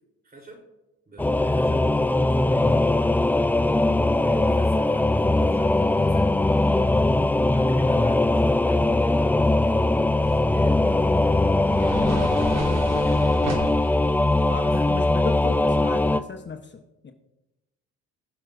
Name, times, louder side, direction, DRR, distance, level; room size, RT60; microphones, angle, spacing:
voice 1, 0.2-0.6 1.1-2.7 4.1-6.3 7.4-10.0 10.5-11.6 12.3-13.4 14.6-14.7, right 2 dB, 25° right, 1 dB, 3.5 m, -45 dB
Singing / Musical instrument, 1.2-16.2, left 2 dB, 5° left, 0.4 m, -21 dB
sound 1, 10.2-15.7, right 2 dB, 50° right, 2.5 m, -35 dB
voice 2, 14.5-17.1, left 5 dB, 35° left, 5 dB, 1.0 m, -35 dB
21.0 x 7.3 x 2.6 m, 0.99 s
supercardioid pair, 80°, 33 cm